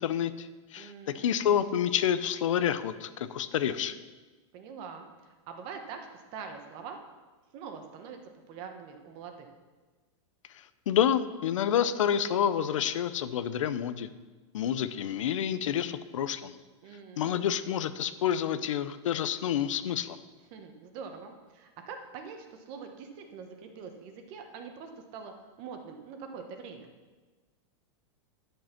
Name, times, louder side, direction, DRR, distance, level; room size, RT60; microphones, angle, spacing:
voice 1, 0.0-4.0 10.5-14.1 14.5-16.6 17.2-20.2, left 9 dB, 85° left, 13 dB, 0.7 m, -29 dB
voice 2, 0.8-1.6 4.5-7.0 7.5-8.2 8.5-9.5 16.8-17.4 20.5-25.3 25.6-26.9, right 6 dB, 30° right, 5 dB, 1.1 m, -44 dB
10.5 x 6.7 x 5.9 m, 1.3 s
supercardioid pair, 170°, 16 cm